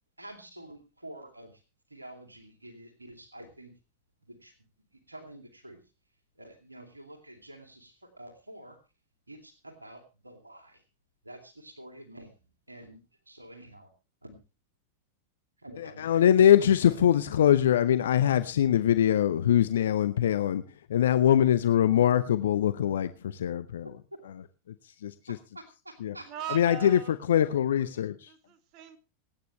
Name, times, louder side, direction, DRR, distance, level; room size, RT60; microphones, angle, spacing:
voice 1, 0.2-1.6 1.9-3.7 4.2-4.6 4.9-5.8 6.4-8.8 9.3-10.8 11.2-12.3 12.7-13.0 13.3-13.9 14.2-14.4 15.6-16.2 16.6-17.0 23.8-24.2 24.9-25.0 25.3-26.9, right 1 dB, 80° right, 2.5 m, -48 dB
voice 2, 16.0-20.6 20.9-23.9 25.0-25.4 26.0-26.1 26.5-27.0 27.3-28.3, left 10 dB, 60° left, 0.7 m, -23 dB
voice 3, 26.3-27.2 27.9-29.0, right 12 dB, 40° right, 2.0 m, -41 dB
27.0 x 9.4 x 3.2 m
figure-of-eight pair, 90°, 0 cm